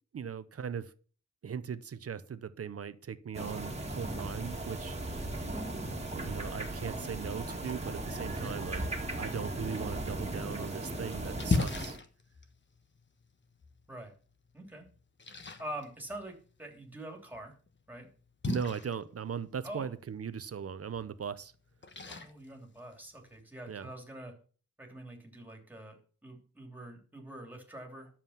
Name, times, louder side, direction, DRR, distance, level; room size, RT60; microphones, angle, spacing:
voice 1, 0.1-0.9 1.4-5.0 5.9-8.8 9.2-12.0 18.4-21.5 23.7-23.9, right 7 dB, 50° right, 0.7 m, -39 dB
sound 1, 3.3-12.0, right 1 dB, 20° right, 2.0 m, -37 dB
voice 2, 8.3-8.7 13.9-14.1 14.5-14.9 15.6-17.6 17.9-18.1 19.6-19.9 22.1-24.3 24.8-26.0 26.2-28.1, right 1 dB, 5° right, 3.1 m, -45 dB
Splash splatter, 10.4-23.4, left 3 dB, 40° left, 1.2 m, -40 dB
11.0 x 7.4 x 5.7 m
wide cardioid pair, 155°, 30 cm